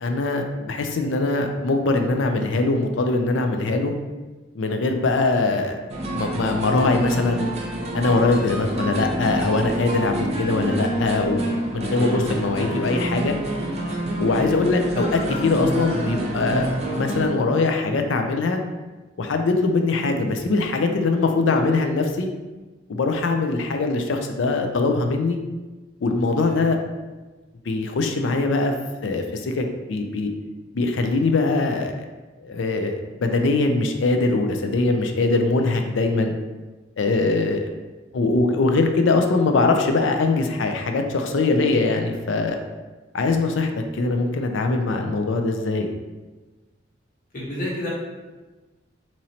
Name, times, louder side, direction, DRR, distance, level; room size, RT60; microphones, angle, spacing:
voice 1, 0.0-3.9 4.5-5.8 6.1-7.5 7.9-11.4 11.7-13.4 14.2-18.6 19.2-22.3 22.9-25.4 26.0-26.8 27.7-28.7 29.0-30.3 30.7-32.1 32.4-32.9 33.2-36.3 37.0-37.7 38.1-42.6 43.1-45.9, left 3 dB, 70° left, 5 dB, 0.4 m, -22 dB
sound 1, 5.9-17.3, right 1 dB, 35° right, 0.6 m, -27 dB
voice 2, 11.9-12.4 26.4-26.6 47.3-47.9, left 1 dB, 45° left, -6 dB, 1.1 m, -30 dB
4.1 x 3.0 x 2.8 m, 1.2 s
head